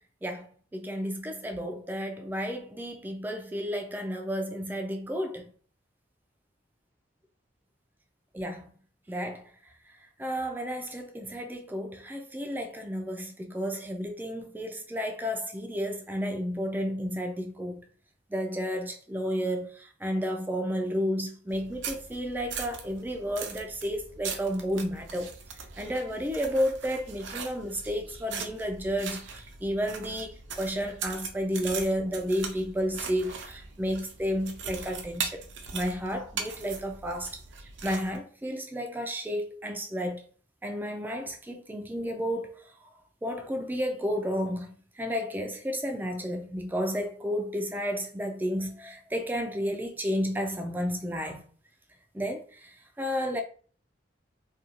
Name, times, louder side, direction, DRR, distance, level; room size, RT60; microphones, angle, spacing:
voice 1, 0.2-5.4 8.3-8.7 9.1-9.4 10.2-17.8 18.3-25.3 25.8-35.4 35.7-37.3 37.8-40.2 40.6-42.6 43.2-51.4 52.1-52.7 53.0-53.4, equal, 10° right, 0.3 m, -32 dB
sound 1, 21.5-38.2, right 6 dB, 75° right, 0.5 m, -40 dB
2.5 x 2.3 x 2.8 m
head